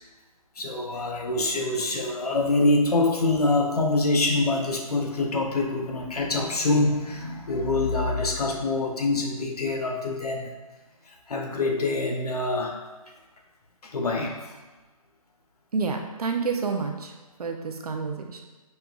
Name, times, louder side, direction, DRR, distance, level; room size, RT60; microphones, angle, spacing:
voice 1, 0.6-10.5 11.1-12.8 13.8-14.5, left 2 dB, 85° left, 0 dB, 0.8 m, -25 dB
voice 2, 15.7-17.1 17.4-18.4, right 4 dB, 80° right, 3 dB, 0.6 m, -29 dB
5.3 x 2.3 x 2.3 m, 1.2 s
hypercardioid pair, 150°, 19 cm